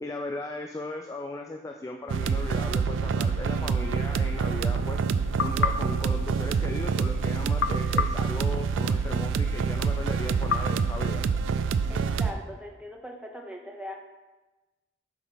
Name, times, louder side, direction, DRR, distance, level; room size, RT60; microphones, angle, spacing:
voice 1, 0.0-5.0 5.4-11.3, left 2 dB, 15° left, 2 dB, 0.3 m, -37 dB
sound 1, 2.1-12.3, right 5 dB, 85° right, 0.3 m, -27 dB
sound 2, 5.4-7.0 7.6-9.2 10.5-11.9, left 6 dB, 85° left, 0.4 m, -33 dB
voice 2, 11.9-14.0, equal, 5° right, 0 dB, 0.7 m, -40 dB
5.8 x 4.0 x 6.2 m, 1.1 s
head